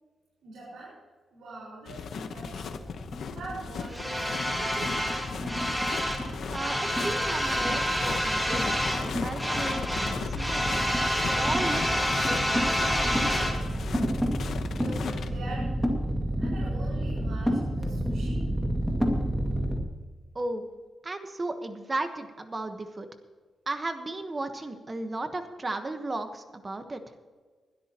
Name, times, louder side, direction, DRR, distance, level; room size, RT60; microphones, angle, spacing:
voice 1, 0.4-1.0 1.3-2.8 3.3-5.0 14.7-15.9 16.4-18.4, right 2 dB, 85° right, -7 dB, 5.1 m, -43 dB
sound 1, 1.9-15.3, left 6 dB, 70° left, 1.1 m, -37 dB
sound 2, 2.4-19.8, equal, ahead, 2.2 m, -28 dB
voice 2, 6.5-10.8 11.3-13.3 20.3-20.6 21.0-23.1 23.7-27.1, right 2 dB, 25° right, 7 dB, 1.2 m, -35 dB
21.0 x 12.5 x 3.0 m, 1.5 s
wide cardioid pair, 125°, 0 cm